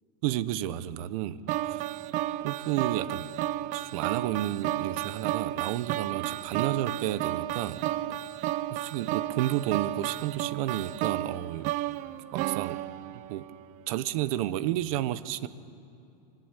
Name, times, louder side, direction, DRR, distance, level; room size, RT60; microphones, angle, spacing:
voice 1, 0.2-1.4 1.7-1.8 2.4-3.3 3.7-7.8 8.7-11.7 12.3-12.8 13.3-13.5 13.9-15.5, right 13 dB, 60° right, 15 dB, 1.1 m, -31 dB
sound 1, 1.5-13.7, right 14 dB, 40° right, 0.6 m, -32 dB
27.0 x 19.0 x 8.4 m, 2.8 s
supercardioid pair, 140°, 20 cm